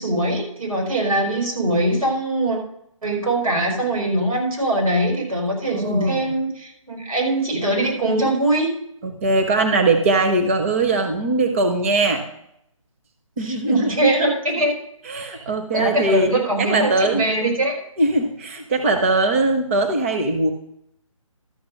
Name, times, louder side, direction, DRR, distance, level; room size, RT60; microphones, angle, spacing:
voice 1, 0.0-2.6 3.0-8.7 13.4-14.8 15.7-17.8, right 1 dB, 85° right, 0 dB, 5.2 m, -22 dB
voice 2, 5.7-6.2 9.0-12.2 13.4-14.0 15.1-16.3 16.6-17.2 18.0-20.5, right 2 dB, 25° right, 5 dB, 0.7 m, -20 dB
12.5 x 5.8 x 6.4 m, 0.75 s
hypercardioid pair, 165°, 18 cm